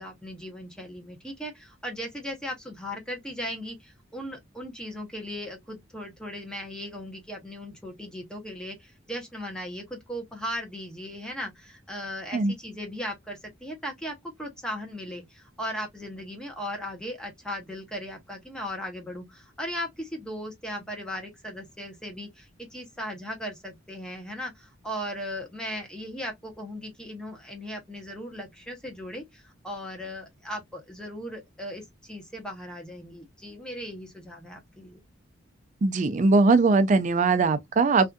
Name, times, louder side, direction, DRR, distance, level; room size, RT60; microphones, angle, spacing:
voice 1, 0.0-35.0, equal, 5° left, 0.7 m, -37 dB
voice 2, 35.8-38.1, right 3 dB, 40° right, 0.4 m, -21 dB
2.6 x 2.4 x 2.2 m
head